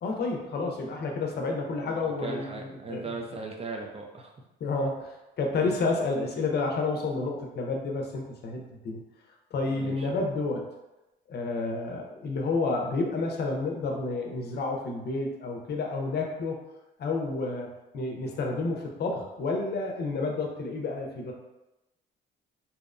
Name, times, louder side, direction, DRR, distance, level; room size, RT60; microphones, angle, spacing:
voice 1, 0.0-3.1 4.6-9.0 9.5-10.6 11.3-16.6 17.0-17.7 17.9-21.3, left 3 dB, 55° left, 1 dB, 0.5 m, -30 dB
voice 2, 1.8-4.3 5.6-5.8 9.6-10.1, right 3 dB, 30° right, 2 dB, 0.4 m, -38 dB
2.7 x 2.0 x 2.4 m, 0.97 s
cardioid pair, 90°, 20 cm